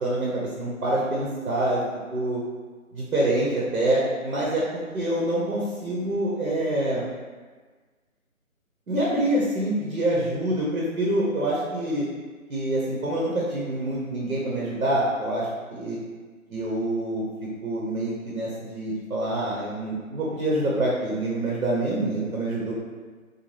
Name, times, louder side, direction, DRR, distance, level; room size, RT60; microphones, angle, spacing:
voice 1, 0.0-1.8 2.1-2.4 2.9-4.6 4.9-7.1 8.9-12.1 12.5-16.0 16.5-17.2 17.6-22.7, right 1 dB, 80° right, -5 dB, 0.9 m, -26 dB
2.7 x 2.2 x 3.2 m, 1.4 s
figure-of-eight pair, 160°, 42 cm